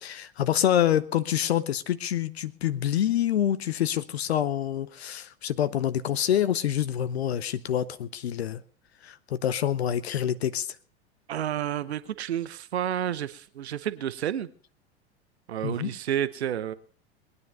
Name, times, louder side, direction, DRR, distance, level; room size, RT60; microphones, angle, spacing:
voice 1, 0.0-8.6 9.0-10.8 15.6-15.9, left 10 dB, 70° left, 14 dB, 0.7 m, -26 dB
voice 2, 11.3-14.5 15.5-16.7, right 10 dB, 75° right, 14 dB, 0.8 m, -30 dB
20.5 x 9.7 x 5.4 m, 0.43 s
figure-of-eight pair, 85°, 33 cm